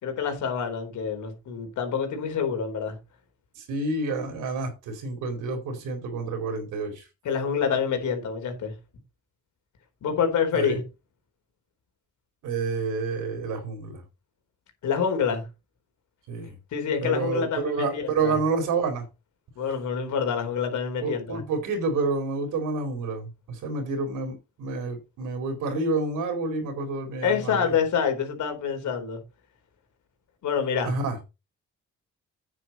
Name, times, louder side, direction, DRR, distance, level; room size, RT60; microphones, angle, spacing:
voice 1, 0.0-3.0 7.2-8.7 10.0-10.8 14.8-15.5 16.7-18.4 19.6-21.4 27.2-29.2 30.4-30.9, left 7 dB, 75° left, 4.1 m, -27 dB
voice 2, 3.6-7.0 10.5-10.8 12.4-14.0 16.3-16.6 17.0-19.1 21.0-27.8 30.8-31.2, right 3 dB, 85° right, 4.4 m, -29 dB
9.2 x 8.3 x 4.2 m
cardioid pair, 90°, 30 cm